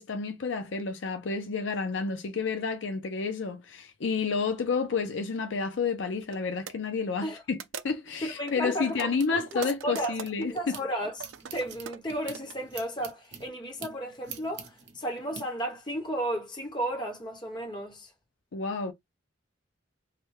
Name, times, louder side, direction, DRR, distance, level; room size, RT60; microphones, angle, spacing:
voice 1, 0.0-7.6 7.8-10.8 18.5-18.9, left 5 dB, 70° left, 0.5 m, -30 dB
sound 1, 4.7-4.9 5.7-5.8 6.2-6.4 6.7-6.8 7.6-8.1 8.5-10.5 11.1-12.5, right 6 dB, 80° right, 0.5 m, -41 dB
voice 2, 8.2-11.2 11.5-18.1, right 1 dB, 25° left, 1.0 m, -33 dB
sound 2, 8.5-10.8 11.2-15.4, right 7 dB, 60° right, 0.8 m, -46 dB
3.3 x 2.2 x 3.1 m
head